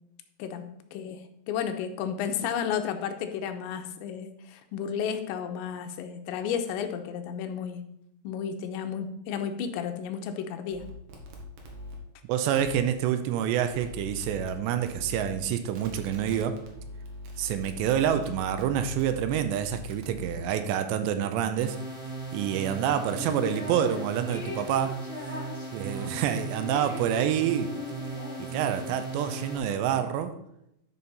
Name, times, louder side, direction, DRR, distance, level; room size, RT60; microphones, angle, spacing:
voice 1, 0.4-7.8 8.2-10.8, left 7 dB, 90° left, 7 dB, 3.0 m, -33 dB
sound 1, 10.7-12.0 12.6-12.7 13.7-14.5 14.9-15.4 15.7-20.4, left 1 dB, 65° right, 2.2 m, -42 dB
voice 2, 12.3-16.6 17.4-21.8 22.3-24.9 25.7-28.0 28.5-30.3, right 9 dB, 85° right, 9 dB, 2.8 m, -27 dB
sound 2, 21.6-29.6, right 3 dB, 5° right, 2.5 m, -38 dB
sound 3, 23.1-24.0 24.3-28.9, left 3 dB, 60° left, 0.6 m, -40 dB
11.0 x 5.5 x 4.1 m, 0.80 s
omnidirectional pair, 5.2 m